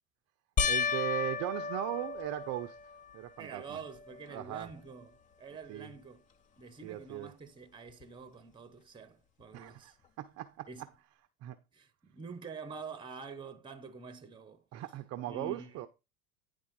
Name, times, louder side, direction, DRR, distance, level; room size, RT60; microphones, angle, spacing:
sound 1, 0.6-3.2 3.8-4.4 4.7-4.8 8.0-8.1, left 6 dB, 20° left, 0.4 m, -34 dB
voice 1, 0.6-2.8 3.1-3.8 4.3-4.7 5.7-5.9 6.8-7.3 9.5-9.9 10.2-10.7 11.4-11.6 14.7-15.9, right 14 dB, 35° right, 0.5 m, -38 dB
voice 2, 3.4-6.3 6.6-10.0 10.7-10.9 11.7-14.6 15.2-15.9, right 5 dB, 10° right, 0.8 m, -47 dB
9.6 x 3.5 x 5.1 m
hypercardioid pair, 85°, 46 cm